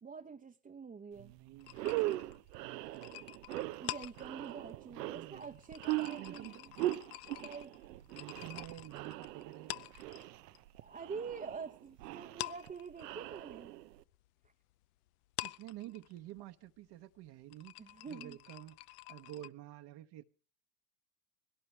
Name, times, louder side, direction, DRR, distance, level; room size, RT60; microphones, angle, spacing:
voice 1, 0.0-1.3 3.8-6.7 7.4-7.7 10.8-13.7 17.8-18.4, right 5 dB, 20° right, 0.8 m, -46 dB
voice 2, 1.1-1.9 2.6-3.3 4.9-5.6 6.1-6.6 8.1-9.9 15.4-20.2, right 14 dB, 55° right, 1.1 m, -50 dB
sound 1, 1.2-1.3 1.7-14.0, right 16 dB, 90° right, 0.8 m, -40 dB
sound 2, 1.6-10.6 10.9-11.9 12.2-19.5, left 19 dB, 70° left, 0.7 m, -48 dB
20.0 x 17.0 x 3.3 m
supercardioid pair, 95°, 48 cm